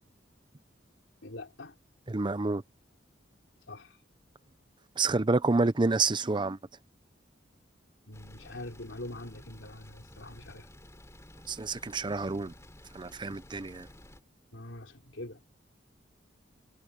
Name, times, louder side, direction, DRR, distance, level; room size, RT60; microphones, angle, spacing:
voice 1, 1.2-1.7 3.7-4.0 8.1-10.7 14.5-15.4, left 1 dB, 80° left, 3.5 m, -44 dB
voice 2, 2.1-2.6 5.0-6.6 11.5-12.5 12.9-13.9, right 3 dB, 25° right, 0.6 m, -28 dB
sound 1, 8.1-14.2, left 1 dB, 15° left, 3.7 m, -52 dB
head